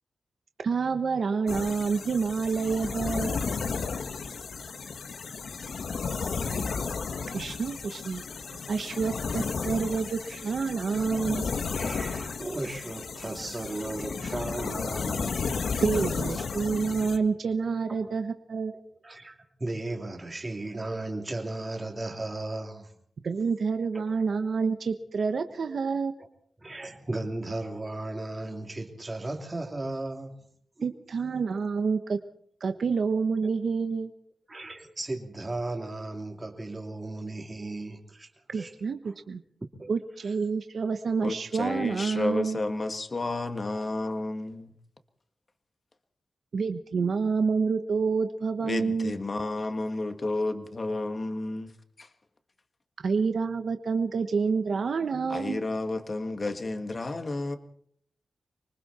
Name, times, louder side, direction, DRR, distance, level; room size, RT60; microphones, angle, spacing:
voice 1, 0.6-3.4 7.3-8.2 8.7-11.5 15.8-18.7 23.2-26.1 30.8-32.2 32.6-34.1 38.5-39.4 39.9-42.6 46.5-49.1 53.0-55.7, right 5 dB, 55° right, 1.2 m, -28 dB
sound 1, 1.5-17.2, left 5 dB, 60° left, 1.5 m, -33 dB
voice 2, 11.7-15.4 16.3-16.5 17.9-18.0 19.0-19.3 19.6-22.9 23.9-24.1 25.7-25.8 26.2-26.3 26.6-30.3 30.8-30.9 34.5-38.7 39.1-39.2 39.8-39.9, right 2 dB, 20° right, 3.0 m, -36 dB
voice 3, 41.2-44.7 48.6-51.7 52.0-52.1 55.3-57.6, left 2 dB, 30° left, 1.7 m, -31 dB
26.0 x 24.0 x 4.4 m
wide cardioid pair, 170°, 0 cm